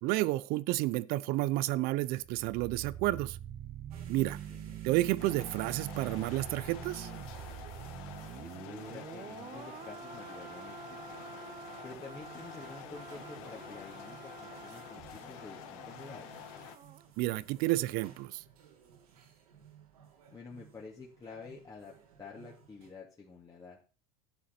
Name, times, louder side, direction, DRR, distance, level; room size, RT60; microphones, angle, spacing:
voice 1, 0.0-3.4 4.1-4.4 4.8-7.1 17.2-18.4, right 18 dB, 55° right, 0.7 m, -31 dB
sound 1, 2.2-17.1 17.3-17.5, right 10 dB, 35° right, 1.1 m, -46 dB
sound 2, 3.9-22.9, right 8 dB, 80° right, 3.9 m, -58 dB
voice 2, 4.2-4.7 8.4-11.2 11.8-16.4 20.3-23.8, left 4 dB, 20° left, 2.5 m, -49 dB
sound 3, 5.2-16.8, left 10 dB, 65° left, 2.0 m, -48 dB
11.5 x 8.6 x 5.9 m
hypercardioid pair, 100°, 18 cm